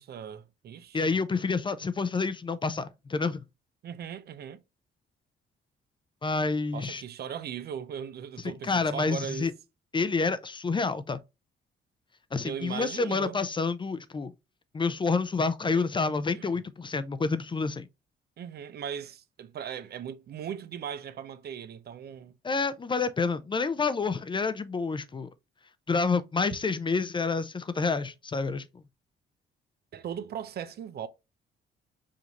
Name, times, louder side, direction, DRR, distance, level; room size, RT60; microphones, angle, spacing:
voice 1, 0.0-1.2 3.8-4.6 6.7-9.5 12.4-13.4 15.7-15.8 16.3-16.6 18.4-22.3 29.9-31.1, right 8 dB, 55° right, 0.5 m, -38 dB
voice 2, 0.9-3.4 6.2-7.0 8.4-9.5 9.9-11.2 12.3-14.3 14.7-17.9 22.4-25.3 25.9-28.6, left 4 dB, 25° left, 0.4 m, -28 dB
5.0 x 2.7 x 2.9 m
cardioid pair, 90°, 20 cm